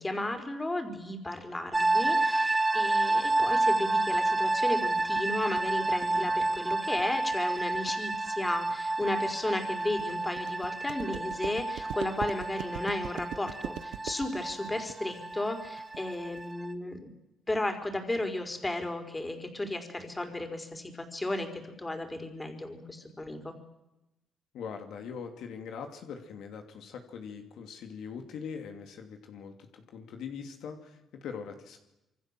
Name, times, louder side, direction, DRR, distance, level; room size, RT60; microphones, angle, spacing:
voice 1, 0.0-17.0 17.5-23.5, left 1 dB, 15° left, 6 dB, 4.8 m, -34 dB
sound 1, 1.7-16.7, right 2 dB, 15° right, 1.7 m, -30 dB
sound 2, 4.6-16.5, right 11 dB, 80° right, 1.1 m, -43 dB
voice 2, 24.5-31.8, left 6 dB, 80° left, 5 dB, 2.9 m, -42 dB
26.5 x 24.0 x 7.7 m, 0.93 s
cardioid pair, 90°, 0 cm